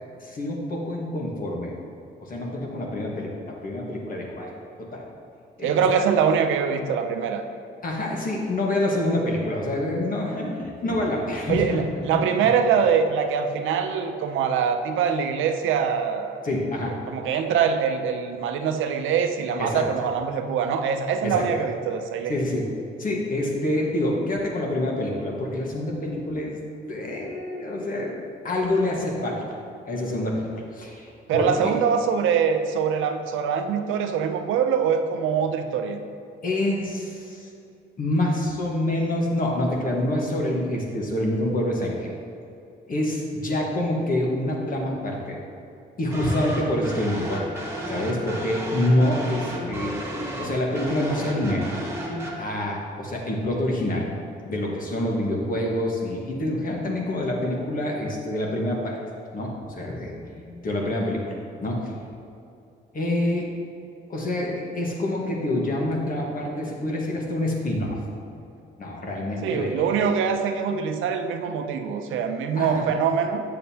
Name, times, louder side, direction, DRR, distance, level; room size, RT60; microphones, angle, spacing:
voice 1, 0.2-1.7 2.2-4.5 4.8-5.1 5.6-5.7 7.8-12.2 16.4-17.0 19.6-19.8 21.2-21.4 22.3-22.6 23.0-26.6 26.9-29.4 29.8-31.7 36.4-37.5 38.0-42.1 42.9-45.4 46.0-47.4 47.9-50.0 50.4-51.7 52.4-54.1 54.4-59.0 59.3-61.3 61.6-61.9 62.9-63.5 64.1-68.0 68.8-70.1 72.5-72.8, left 1 dB, 45° left, -1 dB, 1.5 m, -26 dB
voice 2, 5.6-7.4 11.5-16.4 17.1-22.3 31.3-36.0 69.4-73.4, right 6 dB, 80° right, 6 dB, 0.6 m, -23 dB
sound 1, 46.1-52.4, right 1 dB, 15° right, 1.6 m, -33 dB
7.4 x 6.6 x 2.8 m, 2.6 s
cardioid pair, 90°, 20 cm